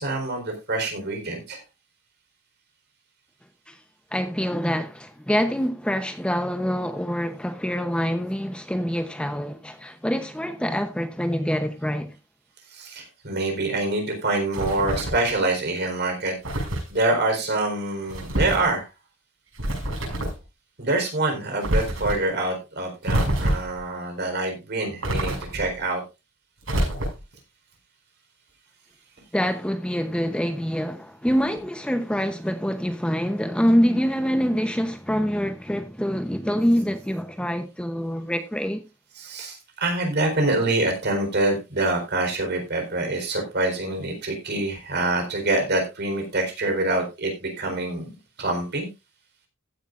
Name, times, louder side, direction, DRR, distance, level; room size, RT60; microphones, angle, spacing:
voice 1, 0.0-1.6 12.7-18.9 20.8-26.0 39.1-48.1 48.4-48.9, right 2 dB, 55° right, 4.3 m, -26 dB
voice 2, 4.1-12.1 29.3-38.8, equal, 5° left, 0.8 m, -25 dB
sound 1, 14.5-15.3 16.4-16.9 18.1-18.7 19.5-20.4 21.6-22.2 23.0-23.8 25.0-25.7 26.6-27.3, right 1 dB, 75° right, 6.4 m, -26 dB
15.0 x 10.0 x 2.5 m
head